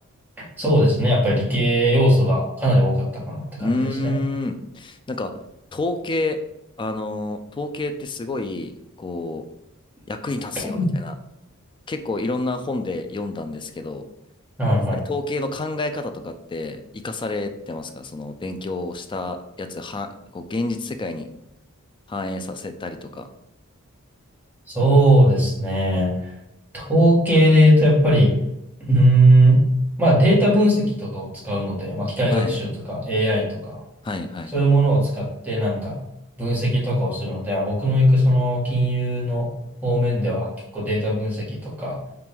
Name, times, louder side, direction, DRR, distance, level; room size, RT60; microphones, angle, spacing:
voice 1, 0.4-4.2 10.6-10.9 14.6-15.0 24.7-26.3 26.7-28.3 28.8-29.6 30.0-33.8 34.5-36.0 36.4-39.5 39.8-42.0, right 1 dB, 10° right, -6 dB, 1.3 m, -19 dB
voice 2, 3.6-5.3 5.7-6.4 6.8-8.7 9.0-9.4 10.1-11.1 11.9-14.0 14.9-21.3 22.1-23.3 32.3-32.5 34.0-34.5, left 2 dB, 20° left, 7 dB, 0.3 m, -29 dB
4.5 x 2.5 x 3.5 m, 0.87 s
head